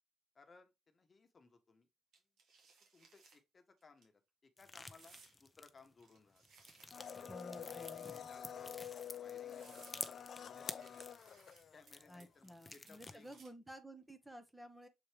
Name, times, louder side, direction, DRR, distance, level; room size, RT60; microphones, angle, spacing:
voice 1, 0.3-1.9 2.9-4.1 4.4-6.4 7.2-11.2 11.7-13.4, left 4 dB, 35° left, 1.2 m, -63 dB
sound 1, 2.1-3.4 3.8-4.0 4.9-5.4 6.0-7.2 8.0-8.6 9.1-9.2 9.5-10.0 10.8-11.9 12.2-12.5 12.7-13.7, right 5 dB, 70° right, 2.7 m, -64 dB
sound 2, 4.6-6.0 6.4-12.2 12.5-13.4, left 2 dB, 20° left, 0.8 m, -50 dB
Domestic sounds home sounds, 6.9-12.2 12.4-12.5, left 9 dB, 55° left, 0.6 m, -48 dB
voice 2, 7.3-8.1 12.1-14.9, equal, 10° right, 1.2 m, -53 dB
7.1 x 4.4 x 3.4 m
cardioid pair, 90°, 0 cm